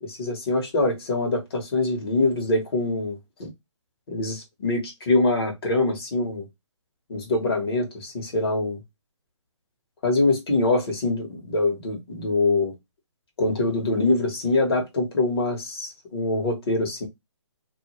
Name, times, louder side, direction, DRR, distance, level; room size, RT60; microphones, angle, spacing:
voice 1, 0.0-3.5 4.1-6.5 7.1-8.8 10.0-12.7 13.4-17.1, left 2 dB, 50° left, 1.3 m, -24 dB
2.7 x 2.2 x 3.0 m
hypercardioid pair, 155°, 16 cm